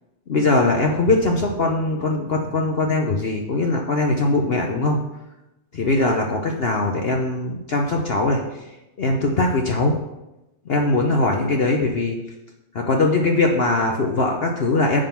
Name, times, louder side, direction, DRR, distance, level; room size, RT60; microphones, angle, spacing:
voice 1, 0.3-5.0 5.7-8.4 9.0-10.0 10.7-12.2 12.7-15.0, left 2 dB, 65° left, 2 dB, 0.5 m, -21 dB
10.0 x 3.8 x 5.7 m, 0.97 s
omnidirectional pair, 2.0 m